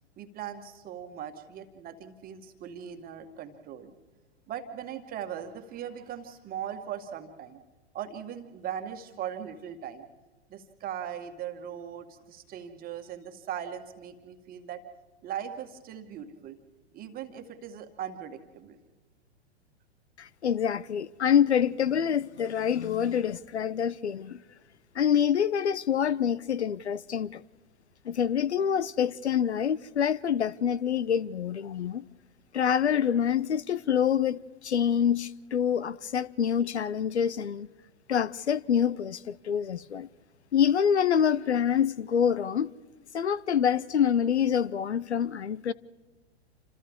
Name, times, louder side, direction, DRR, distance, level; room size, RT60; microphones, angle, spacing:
voice 1, 0.2-3.9 4.5-7.6 7.9-10.1 10.5-14.8 15.2-16.6 16.9-18.8, right 9 dB, 25° right, 1.8 m, -39 dB
voice 2, 20.2-24.4 24.9-27.4 28.0-32.0 32.5-37.7 38.1-40.1 40.5-42.7 43.1-45.7, left 8 dB, 75° left, 0.8 m, -26 dB
28.0 x 26.5 x 3.7 m
figure-of-eight pair, 105°, 34 cm